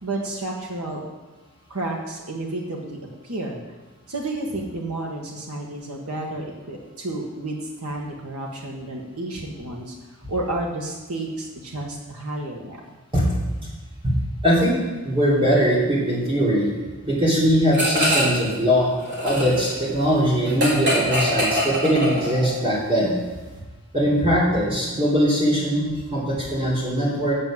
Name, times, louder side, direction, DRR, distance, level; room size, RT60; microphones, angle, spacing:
voice 1, 0.0-1.1 1.7-3.6 4.1-9.9 10.3-13.0, right 2 dB, 85° right, -1 dB, 1.8 m, -31 dB
voice 2, 14.4-16.7 17.0-18.9 19.2-23.1 23.9-27.3, equal, 25° right, -7 dB, 3.1 m, -21 dB
sound 1, 17.7-18.5 18.8-22.6, equal, 50° right, 3.2 m, -24 dB
8.7 x 8.0 x 7.5 m, 1.2 s
head